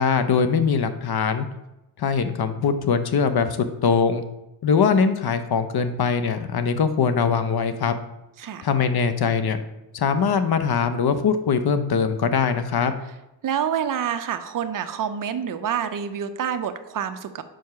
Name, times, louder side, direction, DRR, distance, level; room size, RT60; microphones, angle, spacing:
voice 1, 0.0-1.5 2.0-4.2 4.6-7.9 8.6-9.6 9.9-12.9, left 6 dB, 55° left, 10 dB, 0.7 m, -22 dB
voice 2, 13.4-17.4, right 8 dB, 45° right, 9 dB, 0.6 m, -27 dB
4.8 x 4.5 x 5.6 m, 0.93 s
cardioid pair, 85°, 46 cm